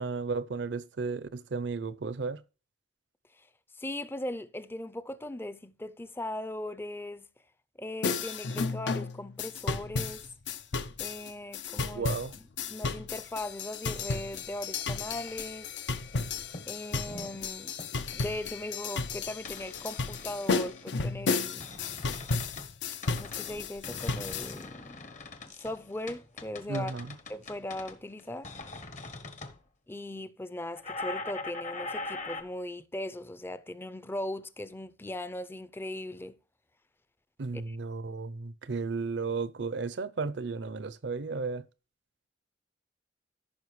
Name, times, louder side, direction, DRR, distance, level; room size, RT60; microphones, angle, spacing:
voice 1, 0.0-2.4 11.9-12.3 26.7-27.1 37.4-41.6, right 4 dB, 70° right, 0.6 m, -34 dB
voice 2, 3.8-7.3 7.8-10.2 11.0-15.7 16.7-17.7 18.1-21.7 23.2-25.1 25.4-26.9 27.3-28.5 29.9-36.4 37.5-37.8, left 1 dB, 10° left, 0.5 m, -39 dB
sound 1, 8.0-24.6, left 4 dB, 70° left, 0.6 m, -33 dB
sound 2, 14.8-15.7 16.1-16.3 16.5-17.4 17.8-18.2 19.5-20.9 21.3-22.7 23.0-29.6 30.8-32.4, left 3 dB, 40° left, 1.0 m, -42 dB
14.0 x 5.6 x 3.1 m
head